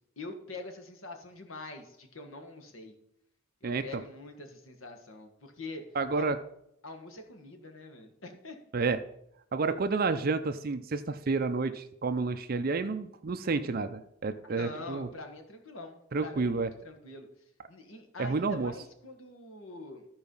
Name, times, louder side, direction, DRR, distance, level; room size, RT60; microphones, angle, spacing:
voice 1, 0.2-2.9 3.6-5.8 6.1-6.3 6.8-8.6 9.7-9.8 14.4-17.3 17.7-20.0, left 2 dB, 80° left, 5 dB, 1.5 m, -44 dB
voice 2, 5.9-6.4 8.7-9.0 9.5-15.1 16.1-16.7 18.2-18.7, right 4 dB, 45° right, 9 dB, 0.5 m, -30 dB
14.0 x 4.8 x 5.4 m, 0.77 s
head